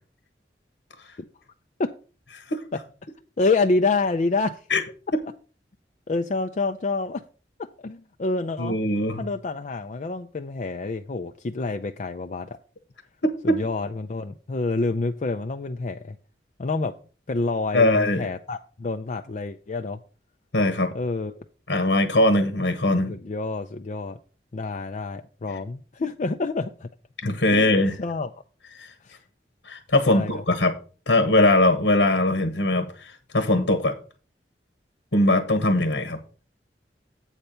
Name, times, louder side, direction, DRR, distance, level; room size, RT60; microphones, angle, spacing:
voice 1, 3.4-4.6 6.1-7.2 7.8-8.8 9.2-12.6 13.4-16.2 16.6-16.9 17.3-20.0 20.9-21.3 23.1-24.2 24.5-26.9 27.5-28.3 29.0-29.2 30.1-30.4, left 3 dB, 40° left, 6 dB, 0.4 m, -27 dB
voice 2, 8.6-9.2 13.2-13.5 17.7-18.3 20.5-20.9 21.7-23.1 27.2-27.9 28.8-28.9 29.6-30.7 31.1-33.9 35.1-36.2, left 1 dB, 90° left, 8 dB, 1.2 m, -21 dB
8.1 x 4.4 x 6.6 m, 0.37 s
head